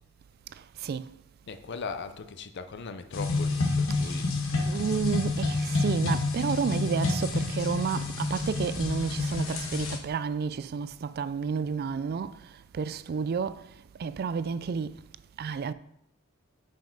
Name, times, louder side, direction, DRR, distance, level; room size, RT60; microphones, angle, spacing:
voice 1, 1.5-4.3, left 4 dB, 60° left, 0.6 m, -39 dB
sound 1, 3.1-10.0, left 3 dB, 85° left, 1.3 m, -29 dB
voice 2, 4.5-12.3 12.7-13.6 14.0-14.9 15.4-15.7, right 6 dB, 50° right, 0.3 m, -30 dB
5.6 x 5.3 x 5.2 m
head